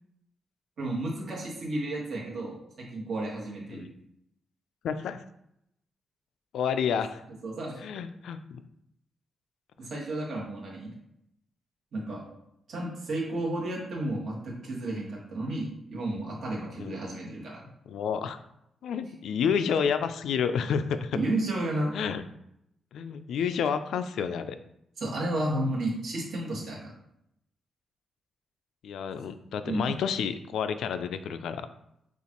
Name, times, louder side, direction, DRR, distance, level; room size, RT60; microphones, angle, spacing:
voice 1, 0.8-3.8 7.4-7.8 9.8-10.9 11.9-12.2 12.7-17.6 21.1-22.0 25.0-26.9 29.7-30.0, right 1 dB, 50° right, -3 dB, 1.4 m, -32 dB
voice 2, 4.8-5.2 6.5-7.2 7.8-8.6 16.8-16.9 17.9-18.4 18.8-21.2 21.9-22.2 22.9-24.6 28.8-31.7, left 7 dB, 80° left, 10 dB, 0.3 m, -30 dB
6.8 x 2.5 x 2.9 m, 0.79 s
wide cardioid pair, 155°, 0 cm